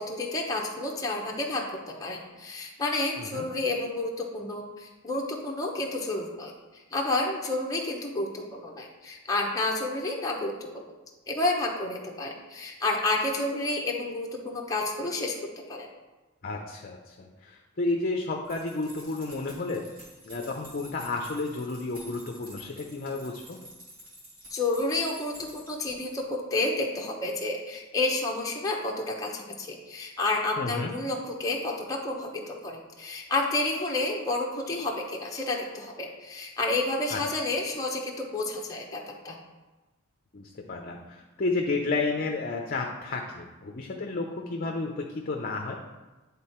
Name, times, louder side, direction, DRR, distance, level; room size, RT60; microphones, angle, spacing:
voice 1, 0.0-1.6 2.0-10.9 11.3-15.9 24.5-39.4, left 2 dB, 15° left, -2 dB, 0.8 m, -30 dB
voice 2, 16.4-19.9 20.3-23.6 30.6-30.9 37.1-37.2 40.3-45.8, left 3 dB, 45° left, 2 dB, 0.6 m, -31 dB
sound 1, 18.4-26.2, equal, 45° right, 2.2 m, -49 dB
9.6 x 3.6 x 4.4 m, 1.1 s
head